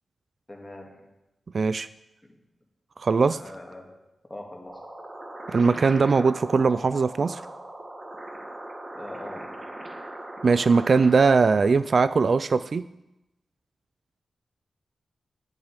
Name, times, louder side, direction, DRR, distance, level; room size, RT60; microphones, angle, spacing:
voice 1, 0.5-1.1 2.2-2.4 3.2-4.0 4.3-4.8 8.9-9.7, left 1 dB, 15° left, 1 dB, 2.2 m, -42 dB
voice 2, 1.5-1.9 3.0-3.4 5.5-7.4 10.4-12.9, right 4 dB, 55° right, 14 dB, 0.3 m, -20 dB
sound 1, 4.7-11.7, right 1 dB, 25° right, 1.9 m, -40 dB
8.7 x 8.1 x 8.2 m, 0.93 s
wide cardioid pair, 90°, 0 cm